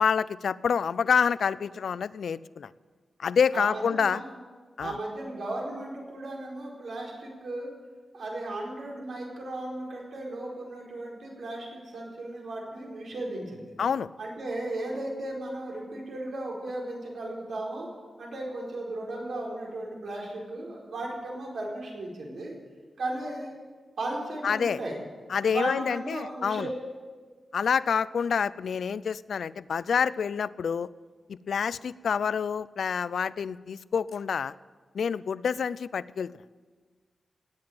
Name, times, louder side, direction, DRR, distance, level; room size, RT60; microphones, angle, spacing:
voice 1, 0.0-2.7 3.2-4.2 4.8-5.0 13.8-14.1 24.4-24.8 25.3-26.7 27.5-30.9 31.3-34.5 34.9-36.3, left 6 dB, 80° left, 18 dB, 0.4 m, -27 dB
voice 2, 3.5-4.3 4.8-7.7 8.1-13.7 14.2-17.9 18.2-22.5 23.0-23.5 24.0-25.0 25.5-26.7, right 2 dB, 80° right, -2 dB, 4.7 m, -36 dB
18.0 x 8.8 x 8.9 m, 1.5 s
wide cardioid pair, 155°, 0 cm